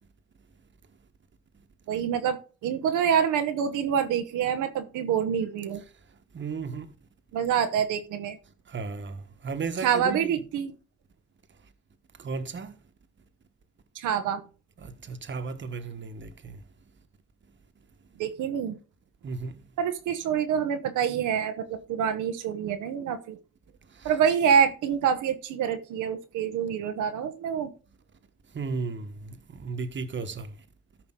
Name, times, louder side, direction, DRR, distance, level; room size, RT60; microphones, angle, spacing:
voice 1, 1.9-5.8 7.3-8.4 9.8-10.7 13.9-14.4 18.2-18.8 19.8-23.4 24.0-27.7, right 8 dB, 85° right, 1.0 m, -26 dB
voice 2, 6.3-6.9 8.7-10.3 12.2-12.8 14.8-16.6 19.2-19.6 24.0-24.1 28.5-30.5, right 4 dB, 40° right, 1.4 m, -34 dB
14.0 x 5.2 x 3.8 m
cardioid pair, 90°, 30 cm